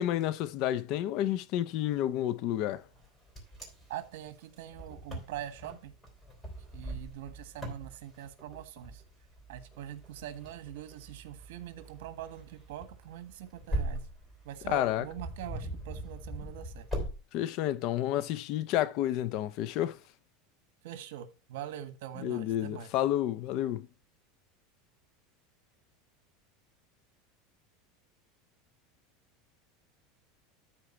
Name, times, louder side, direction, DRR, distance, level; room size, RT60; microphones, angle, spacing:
voice 1, 0.0-2.8 14.7-15.1 17.3-20.0 22.2-23.9, left 12 dB, 45° left, 0.5 m, -30 dB
Wind, 2.9-17.1, right 1 dB, 5° left, 3.7 m, -41 dB
voice 2, 3.9-5.9 6.7-9.0 9.5-14.1 14.4-16.9 20.8-22.9, right 11 dB, 75° right, 1.5 m, -43 dB
13.0 x 4.5 x 4.4 m
supercardioid pair, 165°, 0 cm